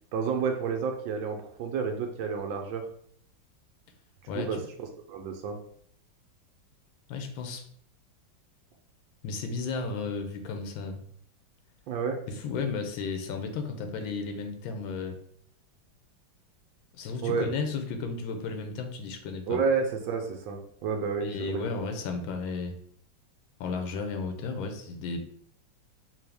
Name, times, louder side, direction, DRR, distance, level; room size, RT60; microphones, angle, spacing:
voice 1, 0.1-2.8 4.3-4.6 5.1-5.6 11.9-12.2 17.2-17.5 19.5-21.9, right 5 dB, 80° right, 3 dB, 1.3 m, -30 dB
voice 2, 4.3-4.7 7.1-7.6 9.2-11.0 12.3-15.2 17.0-19.6 21.2-22.7 23.6-25.2, left 4 dB, 85° left, 5 dB, 1.4 m, -33 dB
3.8 x 2.7 x 3.3 m, 0.62 s
omnidirectional pair, 2.1 m